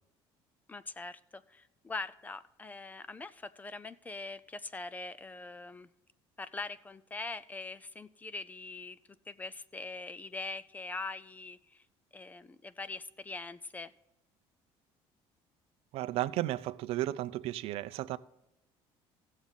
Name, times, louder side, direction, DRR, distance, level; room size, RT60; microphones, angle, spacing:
voice 1, 0.7-5.9 6.4-9.0 9.3-11.8 12.1-13.9, left 3 dB, 15° left, 0.3 m, -42 dB
voice 2, 15.9-18.2, right 15 dB, 65° right, 0.5 m, -34 dB
16.0 x 7.2 x 4.0 m
cardioid pair, 150°, 11 cm